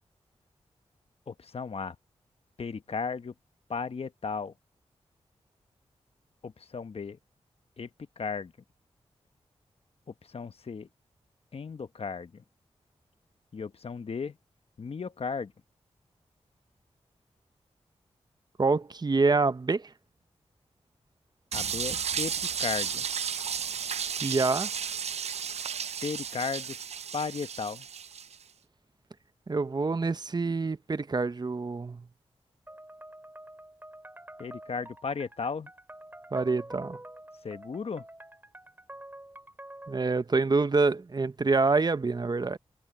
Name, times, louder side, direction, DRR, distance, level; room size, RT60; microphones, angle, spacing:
voice 1, 1.3-2.0 2.6-3.3 3.7-4.5 6.4-7.2 7.8-7.9 8.2-8.5 10.3-10.9 11.5-12.4 13.5-14.4 14.8-15.5 21.5-23.0 26.0-26.8 27.1-27.9 34.4-35.7 37.4-38.0, left 5 dB, 60° left, 1.2 m, -35 dB
voice 2, 18.6-19.9 24.2-24.7 29.5-32.0 36.3-37.0 39.9-42.6, right 3 dB, 40° right, 0.8 m, -26 dB
sound 1, 21.5-28.4, right 7 dB, 70° right, 0.5 m, -33 dB
sound 2, 32.7-40.1, right 1 dB, 20° right, 3.8 m, -47 dB
cardioid pair, 65°, 11 cm